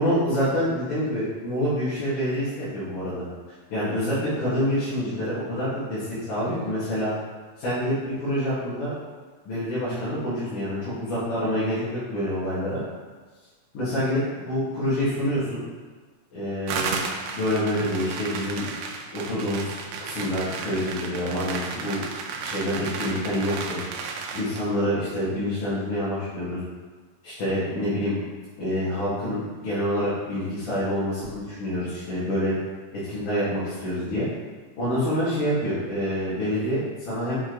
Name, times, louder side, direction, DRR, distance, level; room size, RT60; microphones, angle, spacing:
voice 1, 0.0-3.2 3.7-7.1 7.6-8.9 9.5-12.8 13.7-15.6 16.3-17.0 17.3-18.7 19.1-22.0 22.4-23.8 24.3-26.6 27.2-28.2 28.6-32.5 32.9-34.3 34.8-37.4, equal, 80° left, -13 dB, 3.8 m, -27 dB
sound 1, 16.7-24.7, right 5 dB, 80° right, 1.9 m, -33 dB
7.1 x 5.1 x 4.0 m, 1.4 s
omnidirectional pair, 3.5 m